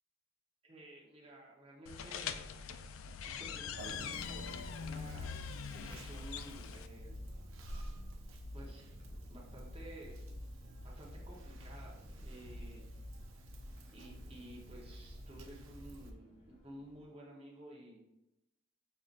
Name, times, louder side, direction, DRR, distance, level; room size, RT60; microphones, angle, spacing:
voice 1, 0.6-2.4 3.2-7.2 8.5-8.9 9.3-10.2 10.8-12.8 13.9-18.0, right 1 dB, 25° right, -3 dB, 0.9 m, -53 dB
sound 1, 1.9-6.9, left 7 dB, 80° left, 0.3 m, -43 dB
sound 2, 3.8-17.0, equal, 60° left, 1.4 m, -62 dB
Conversation, 3.8-16.1, equal, 75° right, 0.6 m, -48 dB
6.5 x 2.8 x 2.5 m, 0.93 s
head